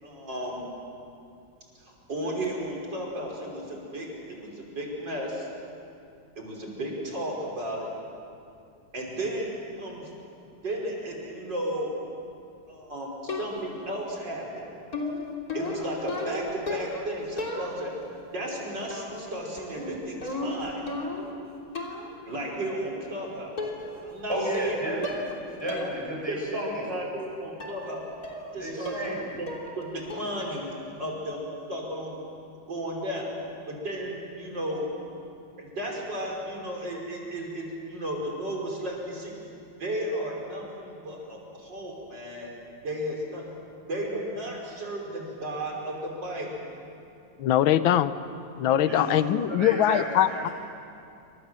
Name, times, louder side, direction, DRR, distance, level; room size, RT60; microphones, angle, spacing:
voice 1, 0.0-0.6 1.8-5.5 6.4-7.9 8.9-10.1 10.6-11.9 12.7-13.1 13.4-14.7 15.5-20.8 22.3-23.6 24.0-24.8 26.3-28.0 28.3-28.9 29.4-29.5 29.8-30.7 31.0-32.2 32.7-33.3 33.7-34.9 35.6-39.3 39.8-42.5 42.8-43.4 43.9-46.5 48.9-49.1, right 1 dB, 60° right, -1 dB, 6.0 m, -34 dB
sound 1, 13.3-13.8 14.9-17.1 17.4-18.0 18.9-19.3 19.6-21.4 21.8-22.1 23.1-23.2 23.6-24.0 24.3-24.7 25.0-25.4 25.7-25.9 26.3-26.4 27.6-27.8 28.2-28.5 28.9-29.2 29.5-29.8 30.1-30.4, left 2 dB, 45° left, 3.8 m, -35 dB
voice 2, 24.3-26.9 28.5-29.4 48.9-49.2 49.5-50.5, right 1 dB, 10° right, -3 dB, 7.5 m, -32 dB
voice 3, 47.4-48.1 48.6-50.5, left 11 dB, 85° left, 13 dB, 1.6 m, -22 dB
28.0 x 25.5 x 7.6 m, 2.6 s
omnidirectional pair, 2.1 m